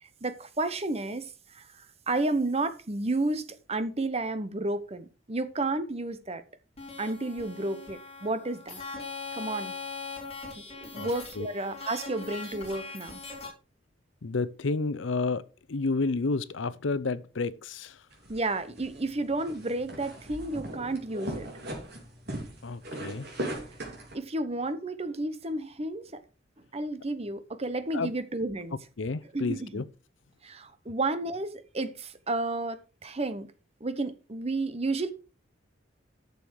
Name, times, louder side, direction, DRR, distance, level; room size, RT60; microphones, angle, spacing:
voice 1, 0.0-6.4 7.0-8.8 9.3-9.7 10.6-13.2 18.3-21.5 24.1-26.2 26.7-28.7 29.3-29.8 30.4-33.5 33.8-35.1, right 2 dB, 30° right, 0.9 m, -32 dB
sound 1, 6.8-13.5, left 4 dB, 35° left, 3.5 m, -41 dB
voice 2, 14.2-15.4 15.7-18.0 22.6-23.3 27.9-28.1 29.0-29.8, left 3 dB, 80° left, 0.6 m, -30 dB
sound 2, 18.1-24.2, right 1 dB, 55° right, 3.4 m, -39 dB
10.5 x 7.0 x 4.7 m
head